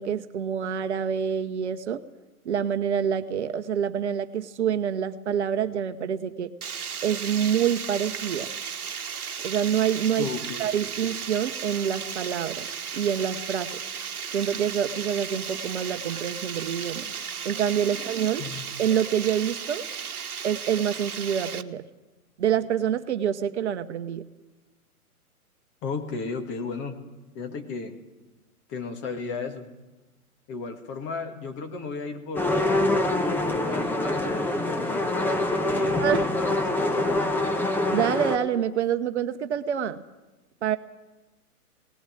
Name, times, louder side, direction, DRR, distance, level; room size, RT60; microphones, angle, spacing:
voice 1, 0.0-2.0 2.4-6.5 7.0-8.5 9.4-10.3 10.6-12.7 12.9-13.7 14.3-17.0 17.4-18.4 18.8-19.8 20.4-21.8 22.4-24.2 36.0-36.3 37.9-40.0 40.6-40.8, right 8 dB, 50° right, 9 dB, 1.0 m, -26 dB
Water, 6.6-21.6, right 7 dB, 70° right, 1.2 m, -35 dB
voice 2, 10.2-10.7 17.0-17.1 17.9-18.1 18.4-18.6 25.8-27.0 27.3-28.0 28.7-29.7 30.5-33.1 33.4-37.6, left 4 dB, 25° left, 5 dB, 2.0 m, -35 dB
sound 1, 32.4-38.4, left 1 dB, 5° left, 1.0 m, -25 dB
18.5 x 17.5 x 9.1 m, 1.1 s
figure-of-eight pair, 120°, 45 cm